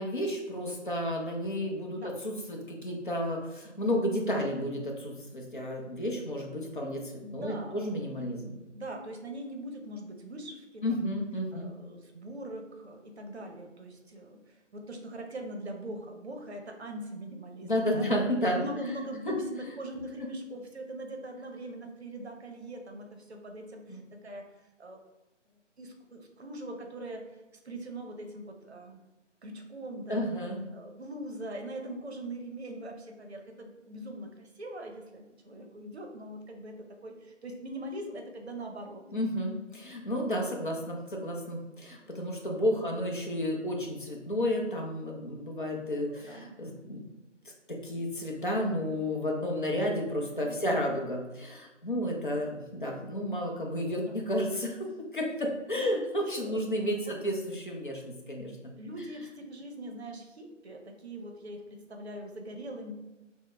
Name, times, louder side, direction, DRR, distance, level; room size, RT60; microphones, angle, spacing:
voice 1, 0.0-8.6 10.8-11.7 17.6-18.6 19.3-19.4 19.6-19.7 23.9-24.0 30.1-30.6 39.1-47.0 47.7-54.9 55.1-58.7, equal, 45° left, 0 dB, 0.6 m, -32 dB
voice 2, 7.2-7.9 8.7-11.0 11.5-18.1 18.5-24.4 24.8-25.0 25.8-29.0 29.4-30.2 30.7-39.0 42.6-43.0 46.1-46.5 50.4-50.7 53.9-54.2 55.7-56.0 56.3-57.0 58.8-62.9, right 1 dB, 60° right, 3 dB, 0.7 m, -42 dB
3.8 x 2.1 x 3.3 m, 1.1 s
figure-of-eight pair, 165°, 37 cm